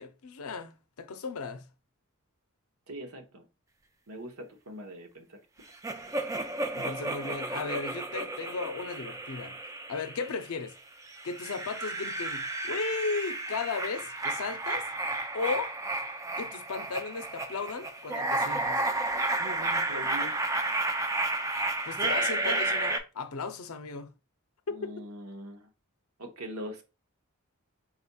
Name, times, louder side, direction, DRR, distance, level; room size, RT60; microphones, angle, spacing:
voice 1, 0.0-1.7 6.7-9.6 9.9-10.7 11.2-14.9 15.3-15.7 16.4-18.8 21.8-24.1 24.8-25.1, left 4 dB, 75° left, 0.6 m, -35 dB
voice 2, 2.9-3.4 4.1-5.4 19.4-20.4 24.7-25.7 26.2-26.8, equal, 80° right, 1.0 m, -42 dB
sound 1, 5.8-10.6 11.1-23.0, right 2 dB, 15° right, 0.5 m, -32 dB
4.2 x 4.1 x 2.3 m
head